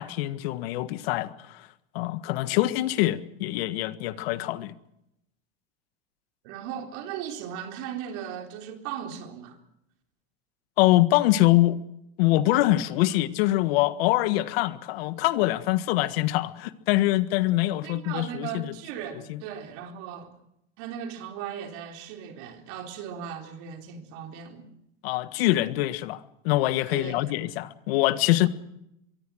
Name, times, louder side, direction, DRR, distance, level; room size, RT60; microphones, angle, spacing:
voice 1, 0.0-1.7 2.0-4.8 10.8-11.8 12.2-18.7 19.3-19.4 25.0-28.5, left 16 dB, 75° left, 1.6 m, -24 dB
voice 2, 6.4-9.6 17.8-20.3 20.8-24.7 26.9-27.2, right 9 dB, 65° right, 4.0 m, -37 dB
24.0 x 23.5 x 6.3 m
supercardioid pair, 130°, 31 cm